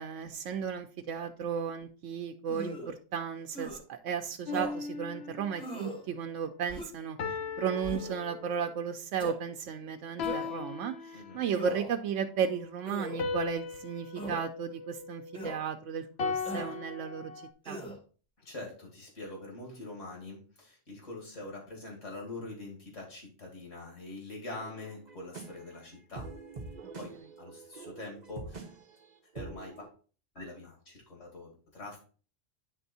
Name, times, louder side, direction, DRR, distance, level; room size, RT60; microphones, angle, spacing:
voice 1, 0.0-7.2 7.6-17.3 17.7-17.8, right 7 dB, 80° right, 5 dB, 0.9 m, -34 dB
sound 1, 2.5-2.9 3.5-3.8 4.5-4.8 5.6-6.0 6.7-7.1 7.8-8.2 9.2-9.4 10.2-10.6 11.5-12.0 12.8-13.2 14.2-14.4 15.3-15.6 16.5-16.8 17.6-18.0, right 1 dB, 5° left, 1.9 m, -40 dB
sound 2, 4.5-5.8 7.2-8.8 10.2-11.7 13.2-15.6 16.2-17.5, left 5 dB, 60° left, 0.9 m, -38 dB
voice 2, 18.4-26.3 27.0-28.6 29.3-29.9 30.3-32.0, left 2 dB, 85° left, 0 dB, 2.5 m, -44 dB
sound 3, 24.5-29.9, right 3 dB, 40° right, 1.0 m, -46 dB
9.1 x 3.4 x 4.1 m, 0.38 s
omnidirectional pair, 1.3 m